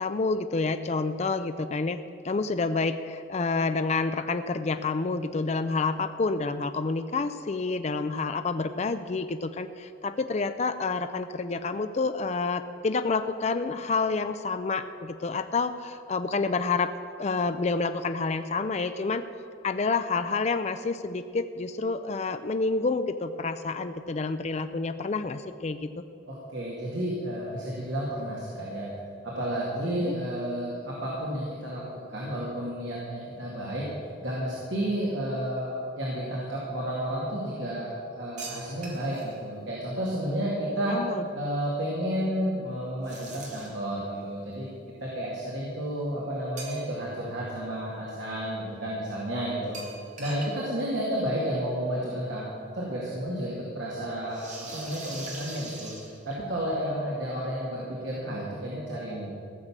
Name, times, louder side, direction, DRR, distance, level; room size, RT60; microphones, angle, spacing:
voice 1, 0.0-2.0 2.2-19.2 19.6-25.9 30.0-30.1 40.9-41.3, left 4 dB, 35° left, 9 dB, 0.4 m, -28 dB
voice 2, 26.3-28.9 29.2-33.9 34.2-41.0 41.3-44.7 45.0-49.8 50.2-52.5 52.7-55.9 56.3-59.4, equal, 65° right, -5 dB, 2.3 m, -31 dB
sound 1, 38.4-39.4 43.0-43.9 46.6-47.2 47.5-47.6 49.7-50.5 50.8-50.9 51.2-51.3 52.5-52.6 54.3-56.6, right 3 dB, 40° right, 2.1 m, -42 dB
16.0 x 6.7 x 7.3 m, 2.5 s
head